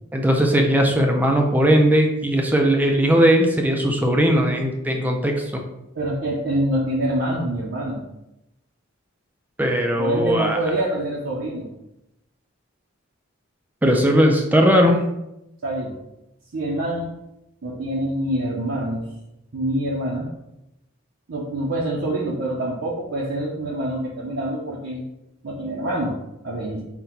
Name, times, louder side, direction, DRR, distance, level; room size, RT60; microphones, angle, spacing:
voice 1, 0.1-5.4 9.6-10.6 13.8-15.0, equal, 10° right, 2 dB, 0.4 m, -18 dB
voice 2, 6.0-8.0 10.0-11.7 15.6-16.0 16.5-17.1 17.6-19.0 19.5-20.3 21.3-25.0 25.4-26.2 26.4-26.8, right 1 dB, 65° right, -4 dB, 0.6 m, -25 dB
3.9 x 2.2 x 4.3 m, 0.89 s
head